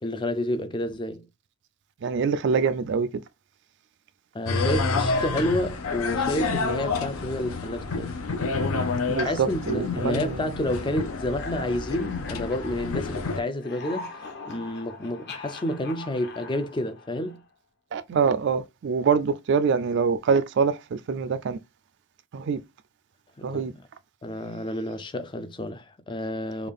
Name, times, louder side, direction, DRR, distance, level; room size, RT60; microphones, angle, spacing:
voice 1, 0.0-1.2 4.3-8.2 9.2-17.4 23.4-23.7 24.2-26.7, left 1 dB, 20° left, 0.4 m, -30 dB
voice 2, 2.0-3.1 9.1-10.6 17.9-21.6 22.3-22.6 23.4-23.7, right 6 dB, 50° right, 0.3 m, -25 dB
sound 1, 4.5-13.4, left 3 dB, 70° left, 0.6 m, -29 dB
sound 2, 9.7-13.2 13.5-17.5, left 4 dB, 50° left, 0.9 m, -42 dB
3.4 x 2.3 x 3.6 m
head